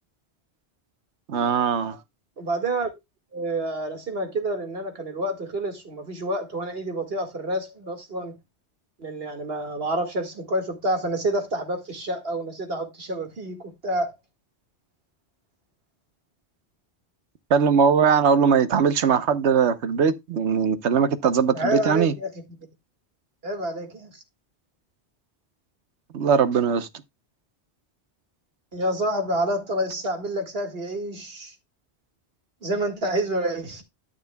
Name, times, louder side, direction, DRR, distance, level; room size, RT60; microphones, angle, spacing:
voice 1, 1.3-2.0 17.5-22.1 26.1-26.9, right 6 dB, 85° right, 1.2 m, -20 dB
voice 2, 2.4-2.9 3.3-8.4 9.0-14.2 21.5-22.6 23.4-24.2 28.7-31.5 32.6-33.8, right 1 dB, 60° right, 2.1 m, -28 dB
13.0 x 6.6 x 2.2 m
omnidirectional pair, 1.1 m